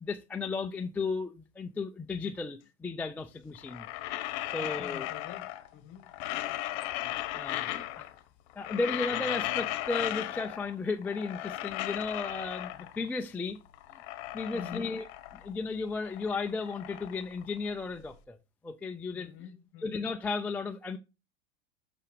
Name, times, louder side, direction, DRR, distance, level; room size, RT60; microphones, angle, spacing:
voice 1, 0.0-3.9 4.5-5.1 6.6-6.7 7.3-8.1 8.5-13.6 13.9-14.0 14.3-15.1 15.3-18.4 18.6-19.3 19.8-21.0, left 3 dB, 5° left, 0.3 m, -34 dB
sound 1, 3.6-5.7 6.0-8.2 8.5-10.7 11.0-13.1 13.6-15.6 15.8-18.0, left 15 dB, 50° left, 1.0 m, -36 dB
voice 2, 4.6-5.5 5.7-6.1 6.3-6.7 12.7-12.9 14.5-14.9 19.1-20.0, left 8 dB, 35° left, 1.3 m, -47 dB
6.1 x 5.5 x 5.1 m
hypercardioid pair, 120°, 34 cm